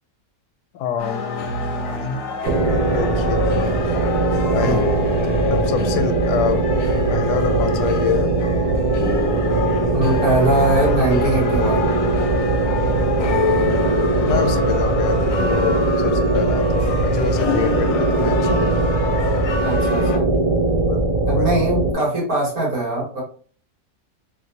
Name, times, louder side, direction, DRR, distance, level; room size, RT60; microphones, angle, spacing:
voice 1, 0.7-2.3 2.9-3.5 4.5-4.8 5.2-6.7 7.1-8.4 13.2-13.6 14.2-18.9 20.9-21.5, left 7 dB, 85° left, 8 dB, 1.2 m, -26 dB
sound 1, 1.0-20.2, left 3 dB, 65° left, 0.9 m, -27 dB
sound 2, 2.4-21.9, right 2 dB, 85° right, 1.3 m, -20 dB
voice 2, 9.9-11.9 19.6-20.3 21.3-23.2, right 1 dB, 60° right, -3 dB, 2.1 m, -21 dB
3.7 x 2.5 x 2.7 m, 0.43 s
omnidirectional pair, 1.7 m